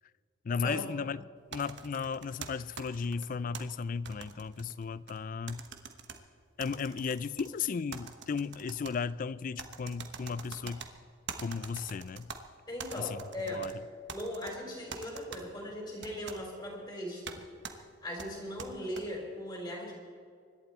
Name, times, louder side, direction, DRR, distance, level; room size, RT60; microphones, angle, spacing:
voice 1, 0.4-5.6 6.6-10.8 11.4-12.3 13.0-13.1 13.5-13.7, left 5 dB, 40° left, 0.3 m, -35 dB
sound 1, 1.5-3.6 4.1-5.2 5.5-6.2 6.6-7.5 7.9-9.0 9.6-10.9 11.3-12.4 12.8-13.7 14.1-14.6 14.9-15.4 16.0-16.4 17.3-17.4 17.6-17.8 18.2-19.0, right 6 dB, 55° right, 1.2 m, -44 dB
voice 2, 12.7-13.6 14.1-17.4 18.0-19.9, equal, 20° left, 4.0 m, -39 dB
25.0 x 11.5 x 4.3 m
head